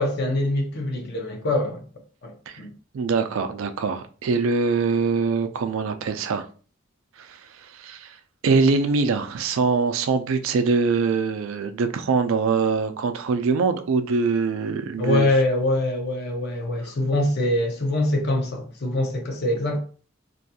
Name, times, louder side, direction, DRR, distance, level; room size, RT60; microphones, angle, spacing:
voice 1, 0.0-1.8 2.2-2.7 15.0-19.8, left 1 dB, 55° left, 0.7 m, -24 dB
voice 2, 2.9-6.5 7.2-8.2 8.4-15.3, right 4 dB, 75° right, 0.4 m, -23 dB
2.5 x 2.3 x 2.7 m
head